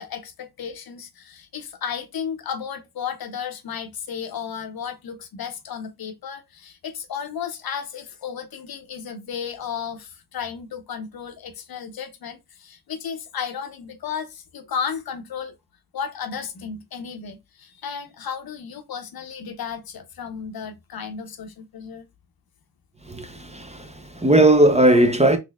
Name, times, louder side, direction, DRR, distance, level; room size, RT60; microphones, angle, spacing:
voice 1, 0.0-15.6 15.9-22.1, left 7 dB, 60° left, 0.7 m, -33 dB
voice 2, 23.0-25.4, right 1 dB, 15° right, 0.5 m, -17 dB
4.1 x 3.0 x 2.2 m
cardioid pair, 90°, 40 cm